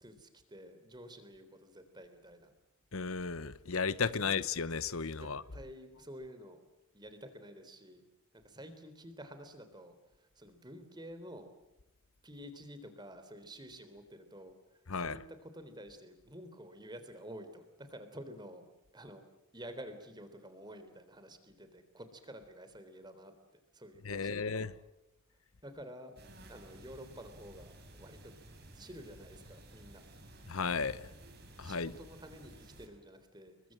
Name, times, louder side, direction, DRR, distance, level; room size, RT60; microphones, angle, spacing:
voice 1, 0.0-2.5 4.2-4.4 5.1-6.6 6.9-8.0 8.3-11.5 12.2-18.7 18.9-19.2 19.5-23.3 23.7-24.7 25.6-26.1 26.5-27.7 28.0-28.3 28.7-30.1 31.6-33.6, equal, 20° right, 3.6 m, -50 dB
voice 2, 2.9-5.4 14.9-15.2 24.0-24.7 30.5-31.0 31.6-31.9, left 5 dB, 80° left, 0.9 m, -34 dB
sound 1, 26.2-32.9, right 1 dB, 50° right, 5.5 m, -54 dB
30.0 x 23.0 x 7.8 m
head